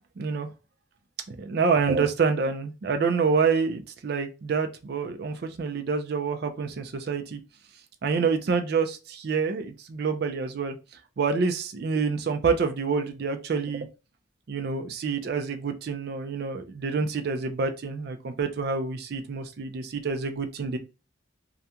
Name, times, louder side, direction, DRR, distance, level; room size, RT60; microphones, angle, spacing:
voice 1, 0.2-0.5 1.3-7.4 8.0-10.8 11.2-13.9 14.5-20.8, right 5 dB, 55° right, 0.3 m, -27 dB
2.4 x 2.2 x 2.7 m
head